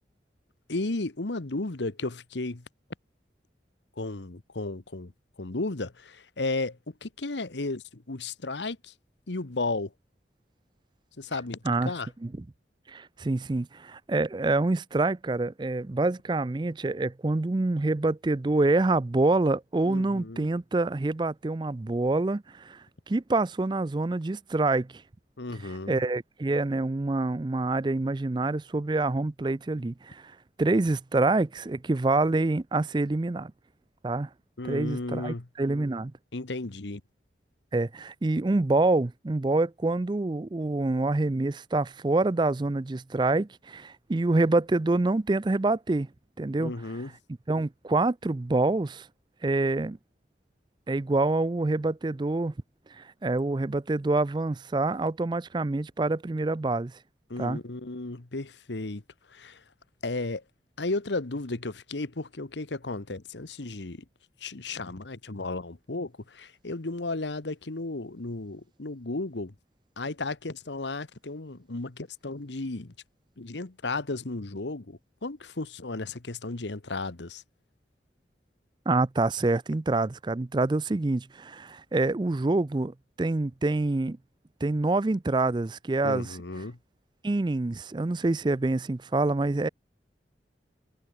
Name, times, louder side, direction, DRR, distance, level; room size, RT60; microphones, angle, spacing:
voice 1, 0.7-2.6 4.0-5.1 5.4-8.9 9.3-9.9 11.2-12.1 19.8-20.5 25.4-26.0 34.6-35.5 36.3-37.0 46.6-47.1 57.3-59.0 59.3-59.6 60.0-60.4 60.8-64.0 64.4-69.5 70.0-72.9 73.4-77.4 86.0-86.8, left 2 dB, 80° left, 1.3 m, -34 dB
voice 2, 12.9-25.0 25.6-33.5 34.0-34.3 34.6-36.1 37.7-46.1 46.4-46.7 47.5-49.1 49.4-50.0 50.9-52.5 52.9-56.9 57.4-57.6 78.9-84.2 84.6-86.4 87.2-89.7, right 2 dB, 25° right, 0.4 m, -26 dB
head